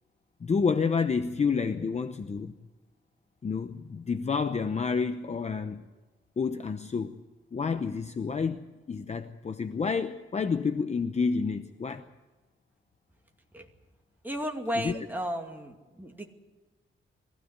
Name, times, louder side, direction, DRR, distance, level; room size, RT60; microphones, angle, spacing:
voice 1, 0.4-2.5 3.4-5.9 6.4-7.2 7.5-12.0 14.8-14.9, left 5 dB, 30° left, 0.8 m, -29 dB
voice 2, 14.2-16.3, equal, 10° right, 2.3 m, -34 dB
22.5 x 16.0 x 8.2 m
wide cardioid pair, 155°, 21 cm